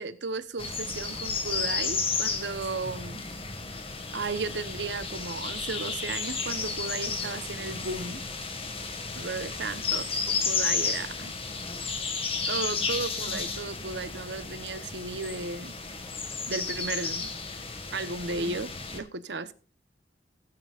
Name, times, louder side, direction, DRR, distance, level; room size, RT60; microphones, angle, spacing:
voice 1, 0.0-3.2 4.1-8.2 9.2-11.3 12.5-15.7 16.5-17.3 17.9-19.5, right 3 dB, 75° right, 1.1 m, -34 dB
sound 1, 0.6-19.0, left 4 dB, 35° left, 1.9 m, -33 dB
16.0 x 9.9 x 2.5 m
head